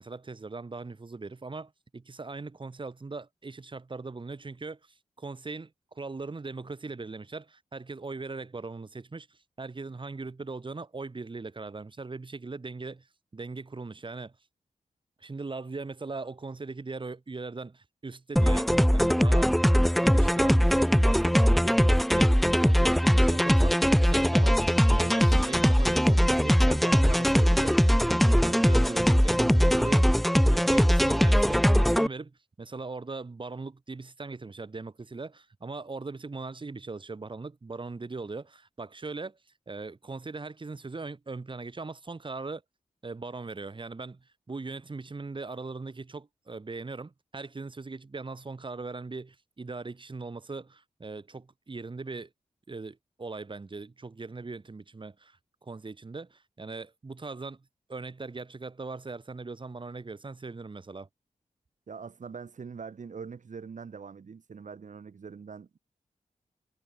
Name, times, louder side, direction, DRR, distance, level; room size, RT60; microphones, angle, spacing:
voice 1, 0.0-13.1 13.3-14.3 15.2-19.7 20.0-24.7 24.9-30.1 30.5-39.4 39.7-42.6 43.0-52.3 52.7-61.1, right 3 dB, 40° right, 5.1 m, -40 dB
sound 1, 18.4-32.1, equal, ahead, 0.3 m, -21 dB
voice 2, 61.9-65.8, right 5 dB, 70° right, 5.8 m, -43 dB
wide cardioid pair, 110°, 13 cm